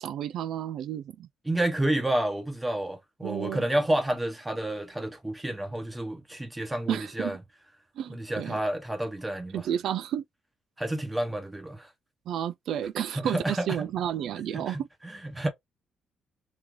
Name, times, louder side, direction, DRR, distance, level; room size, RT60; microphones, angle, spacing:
voice 1, 0.0-1.3 3.2-3.6 6.9-7.4 8.0-8.6 9.5-10.2 12.3-14.9, right 10 dB, 75° right, 0.3 m, -31 dB
voice 2, 1.4-7.4 8.1-9.6 10.8-11.9 13.1-13.8 14.5-15.5, right 1 dB, 10° right, 1.0 m, -30 dB
3.1 x 2.8 x 3.7 m
cardioid pair, 110°, 0 cm